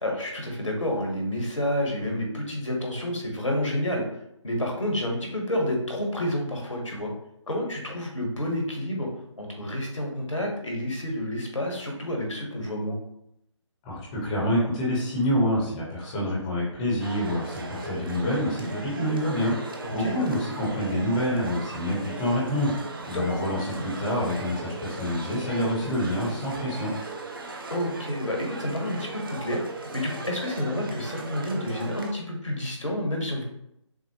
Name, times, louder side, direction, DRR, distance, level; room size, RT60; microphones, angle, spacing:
voice 1, 0.0-4.0 4.4-7.1 7.5-9.1 9.4-13.0 19.8-20.2 23.1-23.2 27.7-29.6 29.9-33.4, left 1 dB, 80° left, 1 dB, 1.4 m, -29 dB
voice 2, 13.9-22.7 23.0-26.9, equal, 10° left, -6 dB, 0.7 m, -27 dB
sound 1, 17.0-32.1, right 2 dB, 45° right, 0.6 m, -37 dB
6.1 x 2.1 x 3.0 m, 0.78 s
figure-of-eight pair, 150°, 16 cm